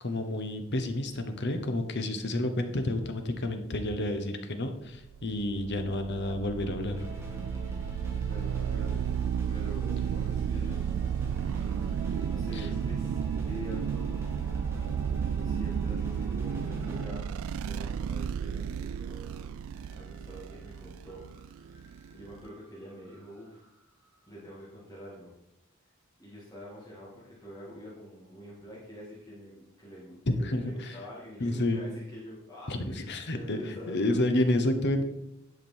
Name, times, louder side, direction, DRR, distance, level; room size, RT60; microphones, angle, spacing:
voice 1, 0.0-7.0 12.5-12.7 30.4-30.9 31.4-31.9 32.7-33.6 33.9-35.0, left 1 dB, 55° left, 7 dB, 1.0 m, -30 dB
sound 1, 5.1-22.5, right 8 dB, 65° right, 0.3 m, -33 dB
sound 2, 6.9-18.1 19.7-20.4 20.6-20.7 21.0-23.8, equal, 10° right, 1.8 m, -43 dB
voice 2, 8.3-9.1 9.5-10.9 12.2-14.4 15.3-17.3 17.6-19.5 19.9-23.6 24.3-25.3 26.2-34.3, equal, 15° left, -8 dB, 2.4 m, -46 dB
11.0 x 5.2 x 4.5 m, 0.84 s
head